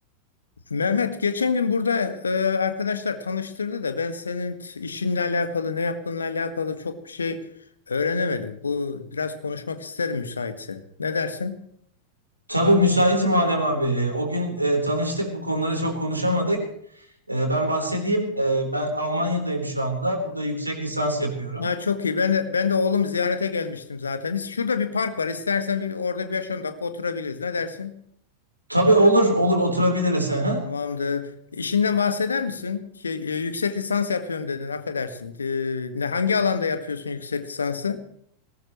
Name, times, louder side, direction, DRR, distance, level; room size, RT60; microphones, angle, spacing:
voice 1, 0.7-7.4 7.9-11.6 21.6-27.9 30.6-38.0, left 5 dB, 75° left, 10 dB, 1.7 m, -26 dB
voice 2, 12.5-16.7 17.0-21.7 28.7-30.7, right 1 dB, 85° right, 2 dB, 4.1 m, -22 dB
20.5 x 18.5 x 3.2 m, 0.67 s
figure-of-eight pair, 90°, 0 cm